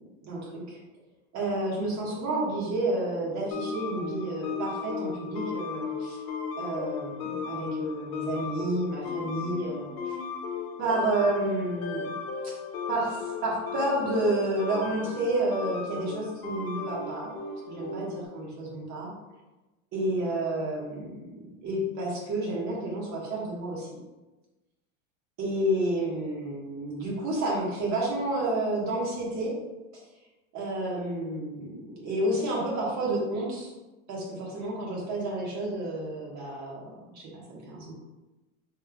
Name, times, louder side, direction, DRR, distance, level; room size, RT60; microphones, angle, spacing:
voice 1, 0.2-0.8 1.3-6.2 6.6-10.2 10.8-12.1 12.4-12.5 12.9-17.3 17.7-19.1 19.9-21.3 21.6-23.9 25.4-29.5 30.5-33.7 34.1-37.9, right 1 dB, 40° right, -3 dB, 1.2 m, -30 dB
sound 1, 3.5-18.3, left 5 dB, 80° left, 0.7 m, -35 dB
3.7 x 3.1 x 2.2 m, 1.1 s
supercardioid pair, 120°, 42 cm